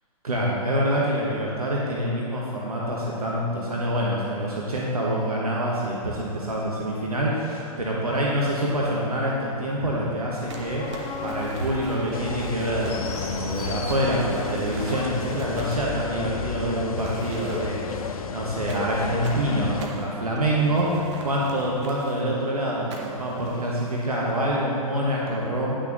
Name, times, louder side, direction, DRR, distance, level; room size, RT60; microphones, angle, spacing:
voice 1, 0.2-25.7, right 1 dB, 80° right, -4 dB, 1.3 m, -26 dB
sound 1, 10.4-24.2, left 2 dB, 40° left, 1.9 m, -40 dB
Crumpling crinkling, 10.5-16.5 16.9-17.9 18.7-22.2 22.9-23.3, right 3 dB, 50° right, 1.3 m, -43 dB
sound 2, 12.1-19.9, left 7 dB, 70° left, 0.5 m, -32 dB
10.0 x 6.3 x 3.9 m, 2.9 s
figure-of-eight pair, 110°, 19 cm